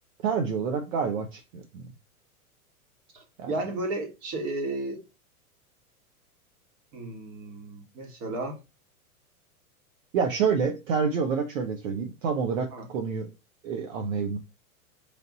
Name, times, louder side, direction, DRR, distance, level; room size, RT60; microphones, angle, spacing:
voice 1, 0.2-1.9 3.4-3.5 10.1-13.3 13.6-14.4, right 6 dB, 60° right, 0.9 m, -28 dB
voice 2, 3.1-5.0 6.9-8.6 12.7-12.9, right 2 dB, 40° right, 1.6 m, -33 dB
3.4 x 2.6 x 4.1 m
hypercardioid pair, 100°, 44 cm